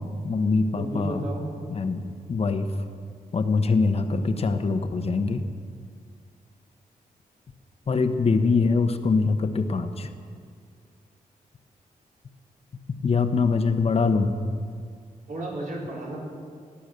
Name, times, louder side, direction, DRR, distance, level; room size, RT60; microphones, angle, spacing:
voice 1, 0.0-1.2 1.7-2.0 2.3-2.7 3.3-5.4 7.9-10.1 13.0-14.3, left 4 dB, 45° left, 8 dB, 0.9 m, -23 dB
voice 2, 0.8-1.5 15.3-16.2, right 1 dB, 70° right, -3 dB, 4.0 m, -33 dB
18.5 x 9.9 x 6.6 m, 2.2 s
wide cardioid pair, 120°, 14 cm